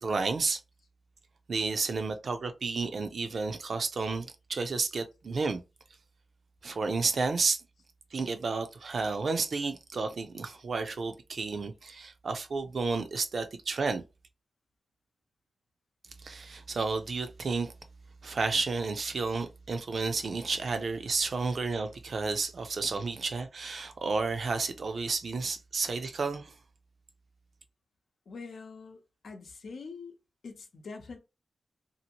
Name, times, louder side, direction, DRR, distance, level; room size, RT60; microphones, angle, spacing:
voice 1, 0.0-0.6 1.5-5.6 6.6-7.6 8.1-14.0 16.2-17.7 18.2-26.5, right 4 dB, 60° right, 0.5 m, -31 dB
voice 2, 28.3-30.1 30.4-31.2, left 4 dB, 75° left, 0.7 m, -44 dB
2.8 x 2.5 x 2.9 m
wide cardioid pair, 100°, 0 cm